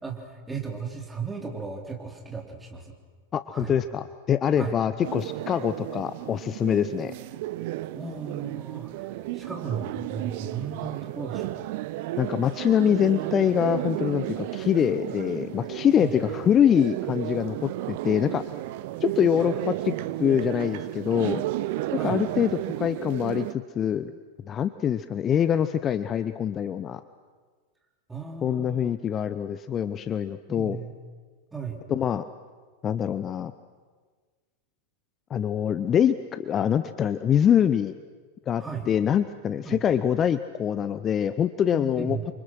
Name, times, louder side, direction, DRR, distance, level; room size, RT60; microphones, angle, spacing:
voice 1, 0.0-2.9 3.5-3.7 4.6-4.7 7.9-9.1 9.3-11.7 16.0-16.3 19.4-19.6 21.9-22.2 28.1-28.9 30.5-30.9 31.5-31.8 38.6-38.9 39.6-39.8 41.7-42.2, right 5 dB, 10° right, 1 dB, 4.1 m, -35 dB
voice 2, 3.3-7.1 12.2-18.4 19.0-19.9 20.2-21.4 21.9-22.5 22.8-24.1 24.5-27.0 28.4-30.8 31.9-32.2 32.8-33.5 35.3-38.0 38.5-42.2, left 9 dB, 25° left, 13 dB, 0.7 m, -24 dB
sound 1, 5.0-23.5, right 16 dB, 50° right, 0.8 m, -33 dB
29.0 x 25.0 x 6.3 m, 1.5 s
figure-of-eight pair, 90°, 0 cm